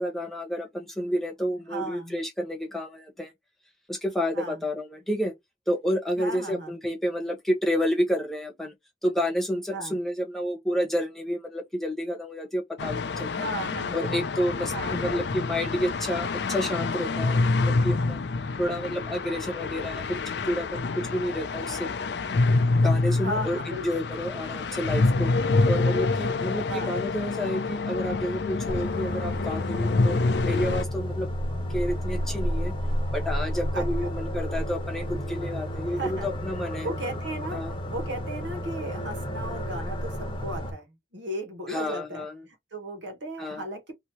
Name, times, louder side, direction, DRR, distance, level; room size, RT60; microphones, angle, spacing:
voice 1, 0.0-3.3 3.9-5.3 5.7-8.7 9.0-13.5 13.9-18.2 18.6-21.9 22.7-25.3 25.6-31.3 31.7-32.7 33.1-36.9 37.5-37.7 41.7-42.4 43.4-43.6, equal, ahead, 1.1 m, -30 dB
voice 2, 1.7-2.2 4.3-4.6 6.2-6.7 9.7-9.9 13.3-14.0 14.7-15.0 23.2-24.0 26.7-27.0 33.7-34.1 35.9-36.3 36.8-43.9, right 1 dB, 80° right, 1.3 m, -35 dB
sound 1, 12.8-30.8, left 3 dB, 65° left, 0.5 m, -27 dB
sound 2, 28.7-40.7, equal, 25° left, 0.9 m, -31 dB
3.0 x 2.7 x 2.8 m
head